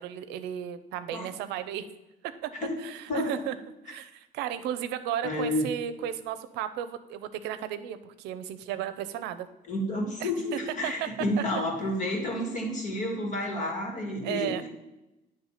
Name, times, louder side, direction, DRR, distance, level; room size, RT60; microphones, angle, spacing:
voice 1, 0.0-1.9 2.4-2.5 2.8-3.6 3.9-9.5 10.2-11.1 14.2-14.6, right 10 dB, 90° right, 11 dB, 0.6 m, -34 dB
voice 2, 5.2-5.7 9.7-14.7, left 1 dB, 45° left, 1 dB, 2.1 m, -30 dB
9.6 x 3.2 x 5.7 m, 0.97 s
cardioid pair, 110°, 17 cm